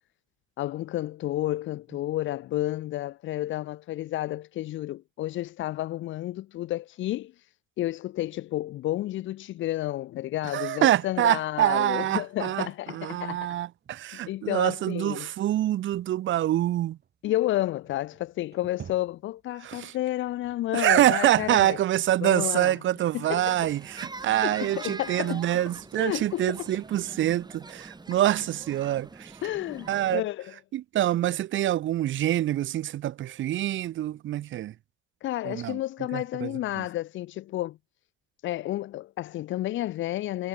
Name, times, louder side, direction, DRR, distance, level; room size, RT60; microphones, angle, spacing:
voice 1, 0.6-7.5 7.8-13.6 14.3-15.3 17.2-21.8 22.2-22.8 23.1-23.7 24.4-25.5 26.0-26.7 29.4-30.6 35.2-37.8 38.4-40.5, left 15 dB, 75° left, 0.7 m, -31 dB
voice 2, 10.5-17.0 19.6-19.9 20.7-29.3 29.9-30.2 30.7-34.7 35.4-35.8 36.1-36.5 36.8-36.9, right 13 dB, 75° right, 1.6 m, -26 dB
sound 1, 13.8-14.2 14.6-14.7 15.3-15.4 15.9-22.0 22.4-26.7, right 8 dB, 55° right, 7.2 m, -51 dB
sound 2, 23.3-30.2, right 3 dB, 20° right, 4.3 m, -44 dB
cardioid pair, 90°, 20 cm